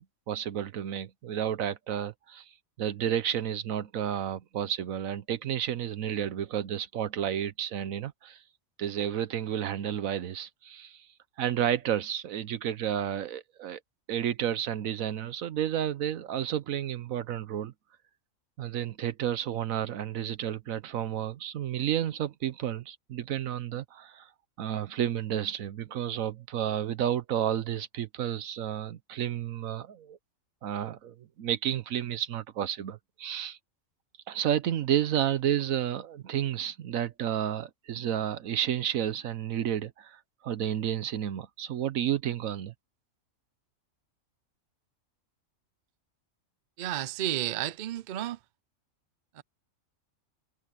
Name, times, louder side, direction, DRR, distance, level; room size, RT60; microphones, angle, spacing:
voice 1, 0.0-2.4 2.8-8.4 8.8-11.0 11.4-13.8 14.1-17.7 18.6-24.3 24.6-30.2 30.6-33.6 34.3-42.7, right 10 dB, 80° right, 1.2 m, -31 dB
voice 2, 46.8-48.4 49.4-49.5, right 13 dB, 55° right, 0.5 m, -32 dB
omnidirectional pair, 1.4 m